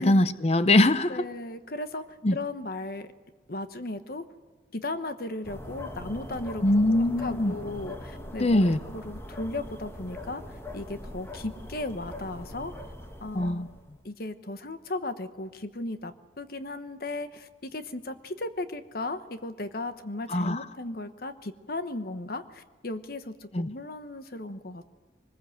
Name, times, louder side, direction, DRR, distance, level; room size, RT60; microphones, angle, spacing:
voice 1, 0.0-1.2 2.2-2.4 6.6-7.5 8.4-8.8 13.3-13.7 20.3-20.6 23.5-23.7, left 1 dB, 35° left, 0.7 m, -22 dB
voice 2, 1.1-3.1 3.5-4.2 4.7-6.6 7.2-12.7 13.2-13.7 14.0-24.9, left 2 dB, 55° left, 1.1 m, -36 dB
sound 1, 5.4-14.0, left 1 dB, 15° left, 1.3 m, -41 dB
22.5 x 20.5 x 7.8 m
head